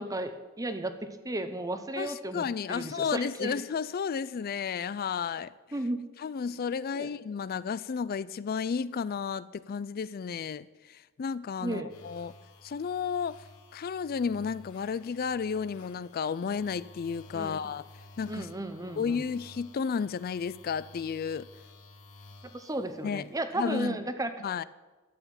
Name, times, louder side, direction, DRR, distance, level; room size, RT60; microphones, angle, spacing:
voice 1, 0.0-3.5 5.7-6.0 6.9-7.1 11.6-11.9 17.3-17.6 18.3-19.2 22.5-24.3, right 1 dB, 15° right, 0.8 m, -34 dB
voice 2, 2.0-5.5 6.2-12.3 12.6-13.4 13.7-17.9 18.2-18.5 19.0-21.5 23.0-23.2 23.6-24.0 24.4-24.6, left 6 dB, 45° left, 0.3 m, -32 dB
sound 1, 11.9-23.5, left 2 dB, 90° left, 2.1 m, -53 dB
13.0 x 8.0 x 8.9 m
head